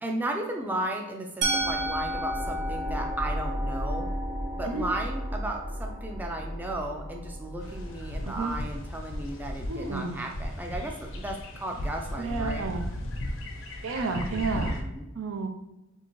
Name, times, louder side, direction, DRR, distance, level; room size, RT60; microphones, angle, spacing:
voice 1, 0.0-4.1 4.5-12.7 14.3-15.1, right 1 dB, 10° right, 1 dB, 0.3 m, -35 dB
Musical instrument, 1.4-7.3, right 1 dB, 55° right, 0.8 m, -34 dB
sound 1, 1.6-12.6, equal, 40° right, 1.1 m, -36 dB
sound 2, 7.6-14.8, left 1 dB, 70° left, 0.5 m, -36 dB
voice 2, 9.7-10.2 12.2-12.8 13.8-14.8 15.1-15.5, right 4 dB, 90° right, 5 dB, 0.5 m, -31 dB
2.8 x 2.7 x 4.4 m, 0.94 s
head